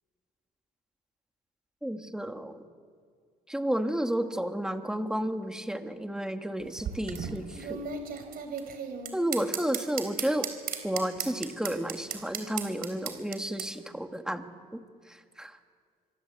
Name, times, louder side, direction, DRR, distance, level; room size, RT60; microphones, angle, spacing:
voice 1, 1.8-2.6 3.5-7.9 9.1-10.5 10.8-14.8 15.1-15.6, right 1 dB, 5° right, 6 dB, 1.9 m, -32 dB
sound 1, 6.6-13.7, right 7 dB, 60° right, 3.8 m, -36 dB
25.0 x 25.0 x 8.2 m, 2.1 s
cardioid pair, 110°, 17 cm